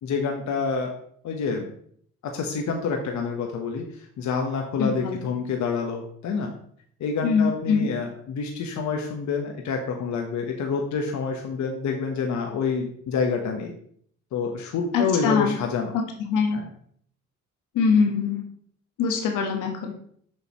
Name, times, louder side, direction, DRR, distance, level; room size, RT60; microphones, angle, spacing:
voice 1, 0.0-0.9 1.2-1.7 2.2-6.5 7.0-13.8 14.3-16.0 16.5-16.7, left 5 dB, 70° left, 2 dB, 1.1 m, -28 dB
voice 2, 4.8-5.1 7.2-7.9 14.9-15.5 16.2-16.6 17.7-18.4 19.0-19.9, left 5 dB, 90° left, 3 dB, 1.3 m, -23 dB
6.6 x 6.5 x 3.0 m, 0.63 s
cardioid pair, 90°, 30 cm